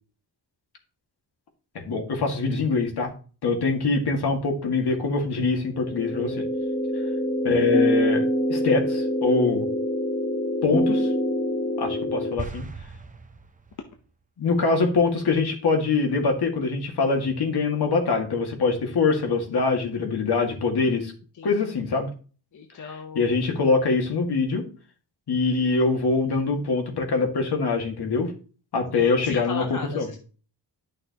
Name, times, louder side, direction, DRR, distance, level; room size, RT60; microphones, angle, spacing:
voice 1, 1.8-3.1 3.4-6.4 7.4-8.2 8.5-9.7 10.6-11.1 11.8-12.7 14.4-21.1 21.4-22.1 23.2-24.7 25.3-28.3 28.7-29.6 29.9-30.1, left 4 dB, 65° left, 3 dB, 2.0 m, -23 dB
sound 1, 5.7-12.3, equal, 30° left, 1.2 m, -25 dB
sound 2, 12.4-14.0, right 3 dB, 20° right, 0.7 m, -39 dB
voice 2, 22.5-23.4 28.9-30.2, left 5 dB, 45° left, 4 dB, 0.9 m, -37 dB
11.5 x 6.4 x 2.9 m, 0.37 s
wide cardioid pair, 165°, 43 cm